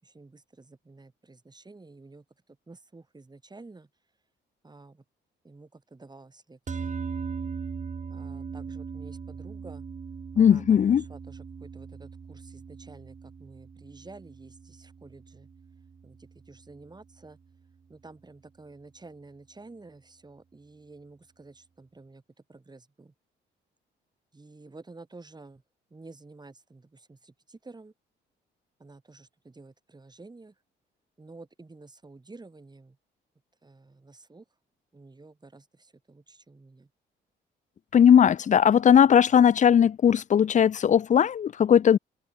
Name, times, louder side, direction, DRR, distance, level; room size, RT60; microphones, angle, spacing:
voice 1, 0.0-3.9 4.6-5.0 5.4-6.9 8.1-9.9 10.4-15.5 16.0-17.4 17.9-22.2 22.5-23.1 24.3-25.6 25.9-27.9 28.8-30.6 31.2-33.0 33.6-34.5 34.9-36.9, right 3 dB, 20° right, 5.4 m, -50 dB
sound 1, 6.7-17.1, right 5 dB, 35° right, 3.6 m, -39 dB
voice 2, 10.4-11.0 37.9-42.0, left 8 dB, 40° left, 0.5 m, -18 dB
open air
cardioid pair, 90°, 20 cm